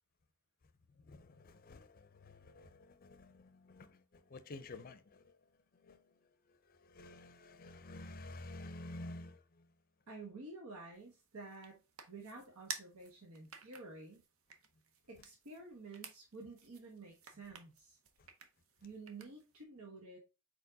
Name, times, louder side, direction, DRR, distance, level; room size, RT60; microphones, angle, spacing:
voice 1, 1.1-4.0 4.3-5.3 5.8-6.0 6.8-9.4, left 2 dB, 40° left, 0.5 m, -50 dB
voice 2, 10.1-11.8 12.0-14.2 15.1-18.0 18.8-20.2, right 3 dB, 85° right, 1.1 m, -51 dB
sound 1, 10.9-19.6, right 6 dB, 70° right, 0.7 m, -53 dB
4.5 x 4.4 x 2.7 m
head